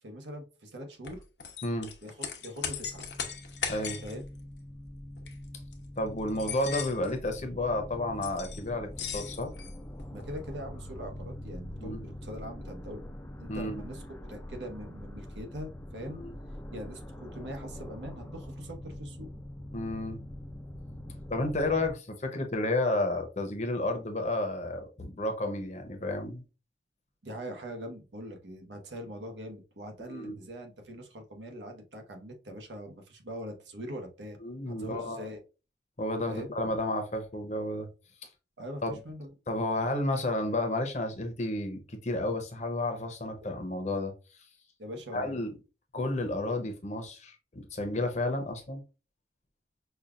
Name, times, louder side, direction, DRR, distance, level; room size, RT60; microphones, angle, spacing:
voice 1, 0.0-1.2 2.0-3.1 4.0-4.2 10.1-13.0 13.4-14.0 14.3-16.2 16.7-19.3 27.2-34.4 34.6-35.4 36.3-36.5 38.6-39.3 43.4-43.5 44.8-45.4, equal, 85° right, 4 dB, 1.0 m, -42 dB
sound 1, 1.0-4.2 5.2-5.3 5.7-5.8 6.3-7.1 8.2-8.6 8.9-10.4, left 7 dB, 75° left, 0.8 m, -38 dB
sound 2, 2.7-21.9, left 1 dB, 15° left, 0.4 m, -44 dB
voice 2, 3.7-4.0 6.0-9.5 11.8-12.0 13.5-13.8 16.2-16.3 19.7-20.2 21.3-26.4 30.1-30.3 34.4-35.3 36.0-37.9 38.8-38.9 39.5-44.1 45.1-45.5 45.9-48.8, left 2 dB, 40° left, 6 dB, 0.7 m, -31 dB
5.4 x 2.3 x 2.4 m, 0.31 s
head